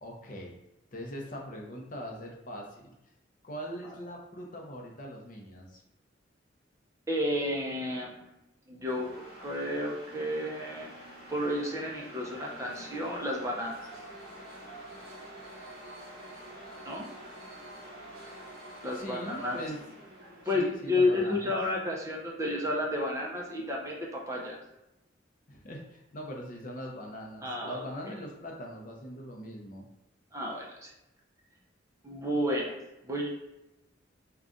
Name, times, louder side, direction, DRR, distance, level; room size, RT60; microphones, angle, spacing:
voice 1, 0.0-0.5 0.9-3.0 3.4-5.8 18.9-19.8 20.5-21.6 25.5-29.9, equal, 45° left, 0 dB, 0.6 m, -41 dB
voice 2, 7.1-8.3 8.7-9.1 9.4-13.9 16.9-17.1 18.8-19.6 20.5-24.6 27.4-28.1 30.3-30.9 32.0-32.7 33.0-33.3, left 1 dB, 15° right, -2 dB, 0.6 m, -31 dB
sound 1, 8.8-21.1, right 1 dB, 50° right, 1.4 m, -47 dB
3.7 x 2.3 x 3.7 m, 0.91 s
head